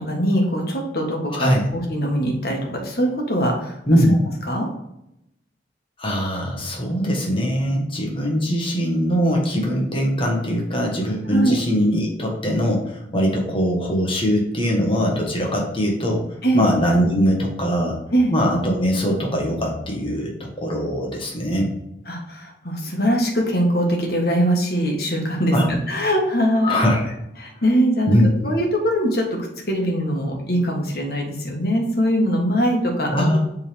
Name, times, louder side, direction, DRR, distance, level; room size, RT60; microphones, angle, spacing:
voice 1, 0.0-3.8 4.5-4.7 11.3-11.5 16.4-16.7 18.1-18.3 22.1-26.8 27.4-28.2 28.4-29.4 29.7-33.1, equal, 55° left, 0 dB, 1.5 m, -22 dB
voice 2, 1.3-1.6 3.9-4.2 6.0-16.2 16.5-18.0 18.3-21.7 25.5-25.7 26.6-27.1 28.1-28.5 33.1-33.4, equal, 30° left, -1 dB, 1.4 m, -21 dB
7.4 x 3.8 x 3.5 m, 0.83 s
head